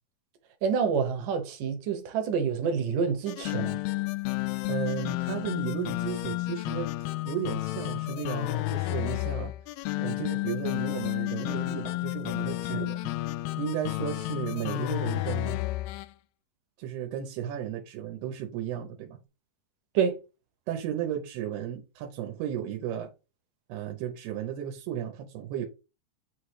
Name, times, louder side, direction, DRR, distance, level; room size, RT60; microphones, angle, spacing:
voice 1, 0.6-3.8 12.7-12.9 19.9-20.2, right 6 dB, 70° right, 2.3 m, -28 dB
sound 1, 3.3-16.1, left 19 dB, 85° left, 2.1 m, -31 dB
voice 2, 4.7-9.5 10.0-13.1 13.6-15.6 16.8-19.2 20.7-23.1 23.7-25.7, right 10 dB, 90° right, 3.1 m, -34 dB
9.3 x 3.3 x 4.7 m
omnidirectional pair, 4.5 m